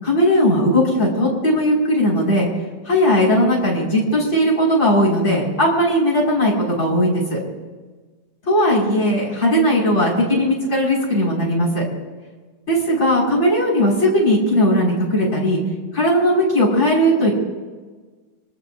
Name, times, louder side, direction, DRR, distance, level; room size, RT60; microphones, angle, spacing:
voice 1, 0.0-2.5 2.8-7.4 8.5-11.9 12.7-15.6 15.9-17.4, equal, 35° left, -5 dB, 6.5 m, -18 dB
26.5 x 20.0 x 2.7 m, 1.3 s
omnidirectional pair, 2.1 m